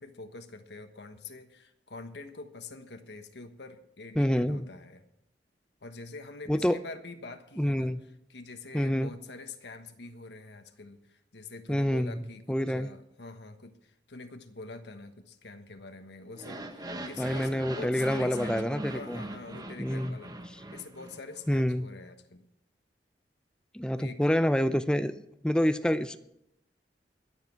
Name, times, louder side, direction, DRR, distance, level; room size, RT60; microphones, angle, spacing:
voice 1, 0.0-5.1 5.8-7.9 8.3-22.4 24.0-24.2, left 3 dB, 75° left, 7 dB, 1.3 m, -45 dB
voice 2, 4.2-4.7 6.5-6.8 7.6-8.0 8.7-9.1 11.7-12.9 17.2-19.2 19.8-20.2 21.5-21.9 23.7-25.1 25.4-26.2, equal, 5° left, 12 dB, 0.4 m, -27 dB
sound 1, 16.3-21.5, right 1 dB, 25° right, 1.2 m, -40 dB
22.5 x 7.5 x 4.6 m, 0.80 s
head